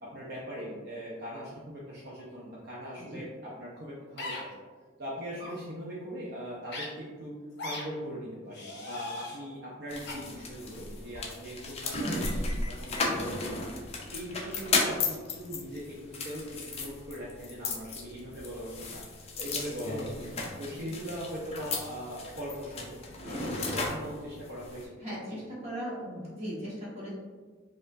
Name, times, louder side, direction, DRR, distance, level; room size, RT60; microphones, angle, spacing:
voice 1, 0.0-4.5 5.0-7.4 7.6-13.7 14.1-19.0 19.4-20.1 20.6-24.9 25.3-25.4, equal, 55° right, -6 dB, 0.6 m, -40 dB
sound 1, 4.2-4.4 5.3-5.5 6.7-6.9 7.6-7.8 8.5-9.4 10.1-10.2, left 2 dB, 60° left, 0.9 m, -38 dB
sound 2, 9.9-24.8, left 3 dB, 35° left, 0.5 m, -35 dB
voice 2, 12.9-13.4 20.8-20.9 23.2-23.5 25.0-27.1, equal, 35° right, -6 dB, 1.2 m, -39 dB
4.4 x 2.5 x 2.5 m, 1.4 s
head